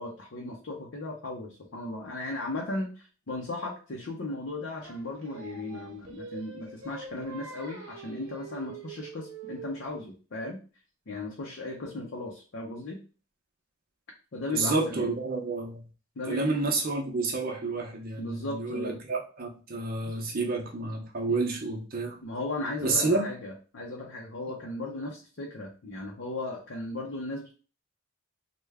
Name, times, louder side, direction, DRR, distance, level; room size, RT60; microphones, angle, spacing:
voice 1, 0.0-10.6 11.1-13.0 14.3-15.1 16.2-16.5 18.2-19.0 21.3-21.4 22.2-27.5, left 2 dB, 55° left, -1 dB, 0.6 m, -36 dB
Singing, 4.8-10.0, right 4 dB, 70° right, 0.8 m, -44 dB
voice 2, 14.5-15.8 16.3-22.2 22.8-23.3, right 3 dB, 45° right, 2 dB, 0.7 m, -29 dB
3.2 x 2.2 x 3.4 m, 0.36 s
head